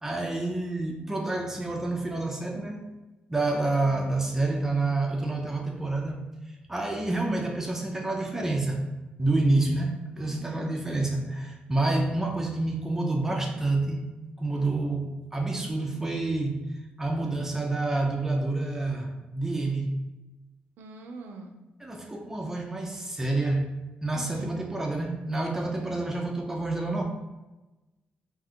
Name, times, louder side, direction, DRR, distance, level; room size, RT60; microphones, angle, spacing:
voice 1, 0.0-2.9 3.3-6.3 6.7-8.9 9.2-14.0 14.4-16.7 17.0-20.0 21.8-23.7 24.0-27.0, right 2 dB, 15° right, 1 dB, 0.3 m, -28 dB
voice 2, 10.2-10.6 14.5-14.7 20.8-21.5 24.0-24.5 25.8-26.1, right 3 dB, 90° right, 4 dB, 0.4 m, -45 dB
2.5 x 2.3 x 3.5 m, 1.1 s
cardioid pair, 120°, 3 cm